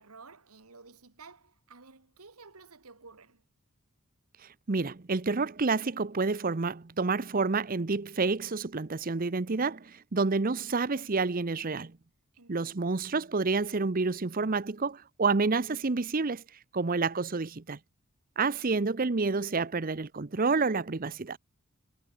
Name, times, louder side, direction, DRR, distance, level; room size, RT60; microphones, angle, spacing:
voice 1, 0.0-3.4 12.3-12.9, right 4 dB, 85° right, 2.2 m, -53 dB
voice 2, 4.7-12.0 12.5-16.4 16.7-17.8 18.4-21.4, right 4 dB, 40° right, 0.7 m, -29 dB
head